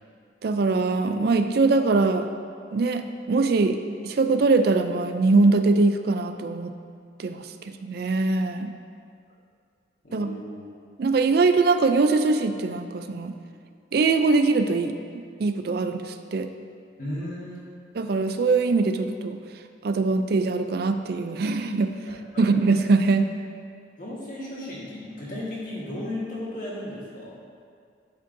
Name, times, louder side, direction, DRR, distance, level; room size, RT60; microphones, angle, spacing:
voice 1, 0.4-2.3 2.7-3.8 4.0-6.7 7.2-7.4 7.8-8.7 10.1-10.4 11.0-13.3 13.9-16.5 18.0-19.4 19.8-21.9 22.4-23.3, right 3 dB, 55° right, 8 dB, 0.4 m, -22 dB
voice 2, 10.0-10.6 17.0-17.7 22.0-22.5 24.0-27.4, left 1 dB, 45° left, -6 dB, 1.6 m, -35 dB
11.5 x 5.3 x 2.6 m, 2.3 s
head